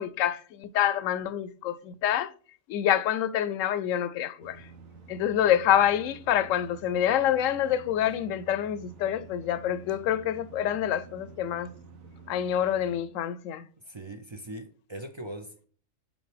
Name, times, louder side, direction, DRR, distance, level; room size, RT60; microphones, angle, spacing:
voice 1, 0.0-2.3 2.7-4.7 5.1-11.7 12.3-13.7, left 10 dB, 80° left, 0.9 m, -27 dB
sound 1, 4.4-13.0, right 4 dB, 90° right, 1.5 m, -49 dB
voice 2, 13.8-15.7, right 1 dB, 45° right, 0.3 m, -40 dB
7.1 x 4.4 x 3.3 m
omnidirectional pair, 1.4 m